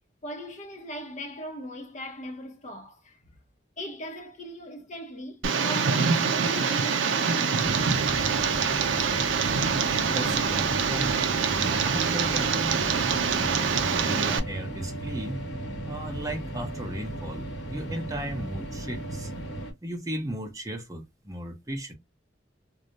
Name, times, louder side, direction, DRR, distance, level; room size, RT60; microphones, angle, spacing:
voice 1, 0.2-3.4 3.8-8.2, equal, 40° left, 0.6 m, -39 dB
Tick, 5.4-14.4, right 5 dB, 90° right, 0.5 m, -25 dB
sound 1, 7.6-19.7, right 1 dB, 75° left, 0.9 m, -36 dB
voice 2, 10.1-11.1 11.4-12.8 13.2-15.4 15.8-19.3 19.8-21.9, right 1 dB, 20° right, 0.6 m, -36 dB
2.2 x 2.0 x 2.7 m
head